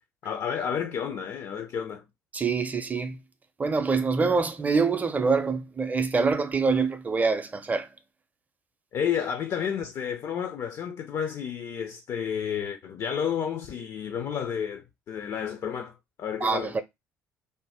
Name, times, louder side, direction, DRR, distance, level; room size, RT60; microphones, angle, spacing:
voice 1, 0.2-2.0 8.9-16.7, left 8 dB, 45° left, 0.4 m, -31 dB
voice 2, 2.3-3.2 3.6-7.9 16.4-16.8, right 4 dB, 20° right, 0.5 m, -25 dB
2.6 x 2.1 x 3.4 m
figure-of-eight pair, 50°, 8 cm